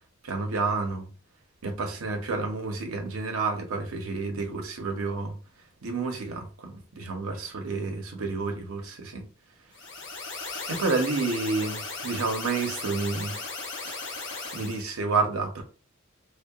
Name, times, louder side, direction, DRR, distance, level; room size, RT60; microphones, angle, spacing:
voice 1, 0.2-1.1 1.6-5.4 5.8-9.3 10.7-13.4 13.8-14.0 14.5-15.6, right 3 dB, 85° right, 0.7 m, -30 dB
sound 1, 9.7-14.8, left 3 dB, 60° left, 0.6 m, -36 dB
2.7 x 2.1 x 2.3 m
head